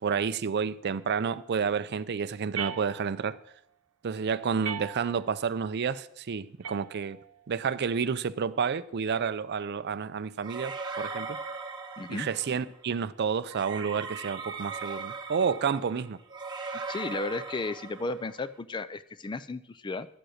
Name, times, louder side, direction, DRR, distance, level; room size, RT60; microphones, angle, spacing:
voice 1, 0.0-3.4 4.0-7.2 7.5-11.4 12.1-16.2, right 6 dB, 50° right, 0.4 m, -30 dB
sound 1, 2.5-3.4 4.6-5.4 6.6-7.4, right 7 dB, 80° right, 0.8 m, -39 dB
sound 2, 10.4-12.6 13.5-18.4, right 4 dB, 20° right, 1.3 m, -39 dB
voice 2, 12.0-12.3 16.9-20.1, left 3 dB, 20° left, 0.4 m, -34 dB
11.5 x 7.8 x 6.4 m
head